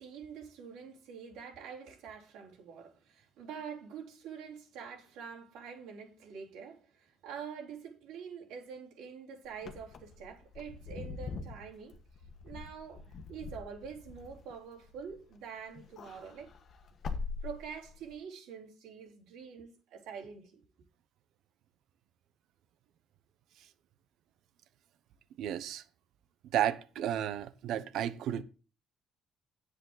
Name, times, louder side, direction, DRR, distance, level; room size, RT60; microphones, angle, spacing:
voice 1, 0.0-12.0 12.4-16.5 17.4-20.6, right 6 dB, 90° right, 3.7 m, -46 dB
Wind / Car, 9.5-15.4 15.7-18.1, left 4 dB, 50° left, 1.4 m, -43 dB
voice 2, 25.4-25.8 26.5-28.4, right 11 dB, 75° right, 0.9 m, -32 dB
10.0 x 7.9 x 4.0 m
cardioid pair, 115°, 0 cm